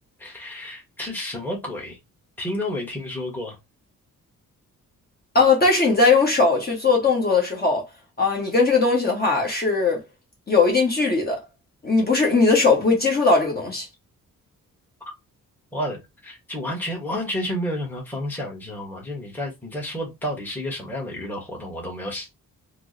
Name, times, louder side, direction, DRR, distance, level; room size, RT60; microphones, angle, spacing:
voice 1, 0.2-2.0 2.4-3.6 15.0-15.1 15.7-22.3, left 1 dB, 5° left, 1.2 m, -31 dB
voice 2, 5.3-7.8 8.2-10.0 10.5-11.4 11.8-13.9, left 4 dB, 25° left, 1.1 m, -19 dB
4.5 x 2.1 x 2.6 m
wide cardioid pair, 130°, 34 cm